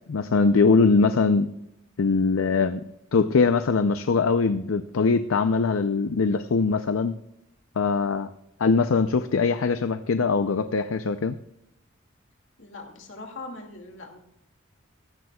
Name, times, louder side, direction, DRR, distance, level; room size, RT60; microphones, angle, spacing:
voice 1, 0.1-1.5 2.0-2.8 3.1-7.1 7.8-8.3 8.6-11.4, left 4 dB, 85° left, 10 dB, 0.5 m, -22 dB
voice 2, 12.6-14.2, left 2 dB, 70° left, 2 dB, 2.3 m, -41 dB
16.0 x 13.5 x 2.3 m, 0.83 s
head